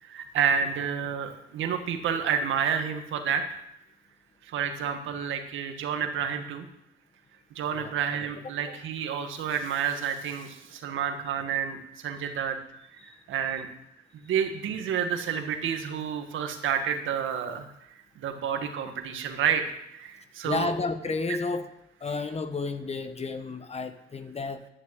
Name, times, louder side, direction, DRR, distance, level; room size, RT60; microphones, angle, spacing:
voice 1, 0.0-3.6 4.5-6.7 7.6-12.6 13.0-13.7 14.2-17.7 18.2-20.7, right 7 dB, 80° right, 6 dB, 1.8 m, -29 dB
voice 2, 20.4-21.7 22.0-24.7, left 3 dB, 30° left, 9 dB, 1.4 m, -32 dB
11.0 x 10.0 x 7.7 m, 0.79 s
cardioid pair, 90°, 20 cm